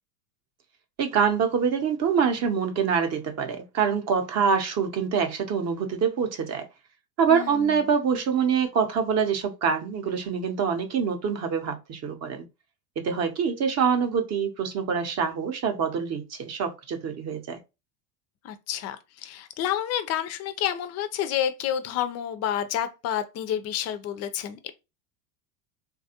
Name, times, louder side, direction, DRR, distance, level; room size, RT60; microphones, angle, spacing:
voice 1, 1.0-6.6 7.2-12.5 13.0-17.6, right 6 dB, 30° right, 0.7 m, -25 dB
voice 2, 7.3-7.8 18.4-24.7, left 10 dB, 35° left, 0.5 m, -29 dB
3.3 x 2.3 x 2.8 m
supercardioid pair, 110°, 50 cm